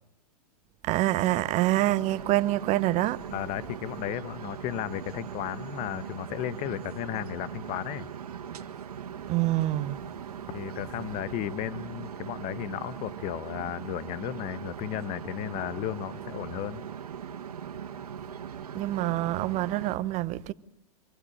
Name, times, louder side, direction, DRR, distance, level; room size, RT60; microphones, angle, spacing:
voice 1, 0.8-3.3 9.3-10.0 18.7-20.5, right 16 dB, 35° right, 1.0 m, -26 dB
sound 1, 1.0-20.0, right 8 dB, 75° right, 1.9 m, -40 dB
voice 2, 3.3-8.1 10.5-16.9, left 12 dB, 40° left, 1.3 m, -34 dB
25.5 x 22.5 x 8.9 m
hypercardioid pair, 105°, 20 cm